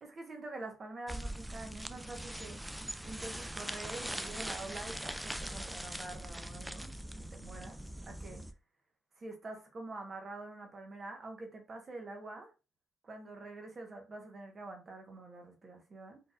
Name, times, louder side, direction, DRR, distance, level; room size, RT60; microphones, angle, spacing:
voice 1, 0.0-2.6 3.0-6.9 7.3-7.8 8.0-8.4 9.2-12.5 13.0-16.2, right 2 dB, 40° right, 1.3 m, -46 dB
sound 1, 1.1-8.5, right 1 dB, 5° right, 0.4 m, -42 dB
4.2 x 3.3 x 2.5 m
cardioid pair, 90°, 0 cm